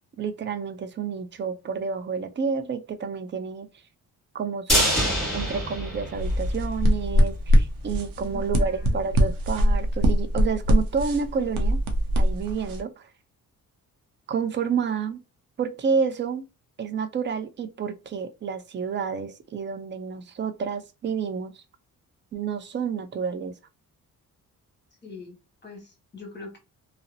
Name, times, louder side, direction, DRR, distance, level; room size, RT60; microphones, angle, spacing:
voice 1, 0.2-3.7 4.3-4.9 5.3-11.8 12.2-13.1 14.3-15.2 15.6-16.4 16.8-21.6 22.3-23.5, right 6 dB, 35° right, 0.4 m, -29 dB
sound 1, 4.7-6.8 7.2-7.3 7.6-7.7, equal, ahead, 1.2 m, -25 dB
sound 2, 6.2-12.8, equal, 90° right, 0.6 m, -23 dB
voice 2, 8.3-9.0 25.0-25.4 25.6-26.6, left 3 dB, 30° left, 1.2 m, -42 dB
2.6 x 2.0 x 2.5 m
cardioid pair, 105°, 34 cm